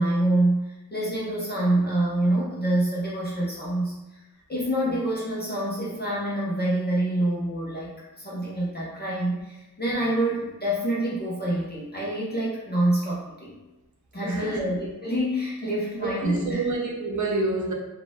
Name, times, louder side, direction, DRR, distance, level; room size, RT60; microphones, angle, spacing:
voice 1, 0.0-4.2 4.5-13.6 14.1-16.6, right 1 dB, 25° left, -6 dB, 0.9 m, -26 dB
voice 2, 14.2-14.7 16.0-17.7, right 2 dB, 55° right, -1 dB, 0.9 m, -28 dB
4.6 x 2.4 x 3.6 m, 1.0 s
wide cardioid pair, 120°, 36 cm